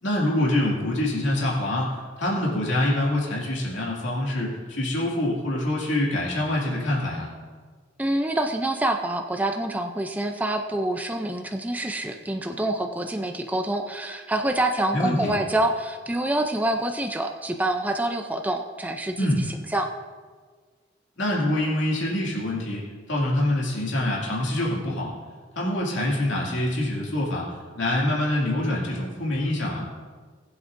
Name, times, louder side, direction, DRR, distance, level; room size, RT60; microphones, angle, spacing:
voice 1, 0.0-7.3 14.9-15.4 19.2-19.4 21.2-25.1 25.6-29.9, left 1 dB, 75° left, -4 dB, 2.4 m, -25 dB
voice 2, 8.0-19.3 19.7-19.9, right 1 dB, 10° right, 4 dB, 0.4 m, -26 dB
19.5 x 7.9 x 2.6 m, 1.5 s
head